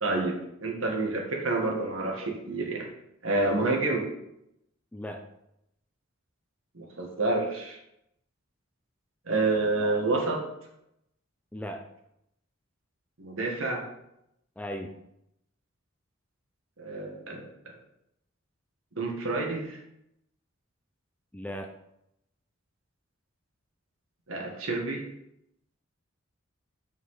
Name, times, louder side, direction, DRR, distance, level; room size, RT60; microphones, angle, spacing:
voice 1, 0.0-0.4 0.6-2.9 3.2-4.0 6.8-7.8 9.3-10.4 13.2-13.8 16.8-17.5 19.0-19.8 24.3-25.0, right 2 dB, 75° right, 0 dB, 1.7 m, -28 dB
voice 2, 4.9-5.3 11.5-11.8 14.6-15.0 21.3-21.7, equal, 5° left, 4 dB, 0.4 m, -37 dB
5.7 x 5.5 x 4.9 m, 0.81 s
head